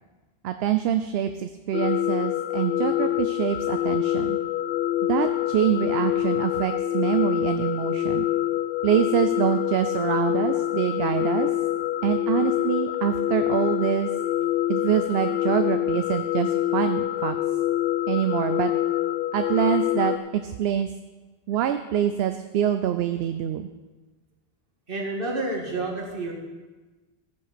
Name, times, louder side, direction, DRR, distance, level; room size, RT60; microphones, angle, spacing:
voice 1, 0.4-4.4 5.1-8.3 8.8-11.5 12.0-14.1 14.7-17.4 18.1-18.7 19.3-20.9 21.5-23.7, right 10 dB, 80° right, 9 dB, 0.8 m, -25 dB
sound 1, 1.7-20.2, left 13 dB, 70° left, 0.7 m, -25 dB
voice 2, 24.9-26.3, right 2 dB, 60° right, -1 dB, 2.1 m, -29 dB
14.5 x 7.1 x 5.1 m, 1.2 s
omnidirectional pair, 1.0 m